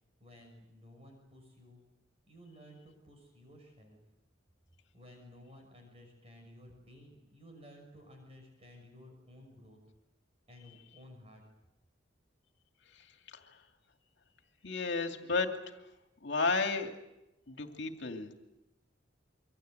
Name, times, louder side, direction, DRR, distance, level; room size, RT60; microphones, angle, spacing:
voice 1, 0.2-1.8 2.3-4.0 4.9-9.8 10.5-11.4, left 1 dB, 35° right, 3 dB, 6.1 m, -55 dB
voice 2, 14.6-15.5 16.2-16.9 17.5-18.3, left 3 dB, 65° left, 5 dB, 2.6 m, -32 dB
27.0 x 24.5 x 8.0 m, 0.93 s
head